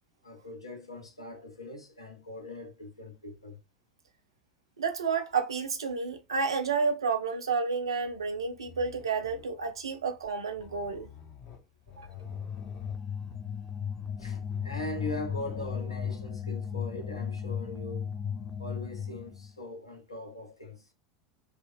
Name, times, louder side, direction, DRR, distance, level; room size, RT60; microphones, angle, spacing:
voice 1, 0.2-3.6 14.2-18.1 18.6-20.9, left 2 dB, 85° left, 0.5 m, -41 dB
voice 2, 4.8-11.1 12.0-12.1, right 5 dB, 75° right, 0.5 m, -30 dB
sound 1, 8.1-16.2, left 8 dB, 50° left, 0.8 m, -50 dB
sound 2, 12.2-19.5, left 7 dB, 15° left, 0.5 m, -36 dB
2.9 x 2.0 x 2.5 m
figure-of-eight pair, 80°, 3 cm